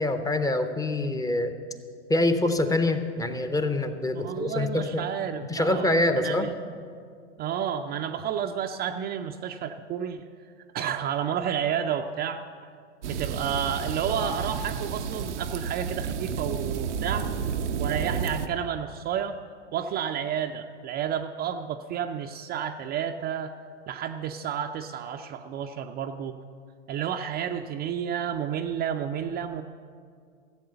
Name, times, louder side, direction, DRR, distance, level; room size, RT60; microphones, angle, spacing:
voice 1, 0.0-1.5 2.1-5.1 5.5-6.5, left 2 dB, 10° left, 8 dB, 0.7 m, -25 dB
voice 2, 4.1-6.5 7.4-10.3 10.7-12.7 13.1-17.3 17.8-19.4 19.7-23.5 23.9-26.3 26.9-29.6, right 8 dB, 25° right, 5 dB, 0.5 m, -31 dB
sound 1, 13.0-18.5, right 6 dB, 90° right, 0.7 m, -31 dB
15.0 x 7.8 x 6.8 m, 2.2 s
hypercardioid pair, 110°, 35 cm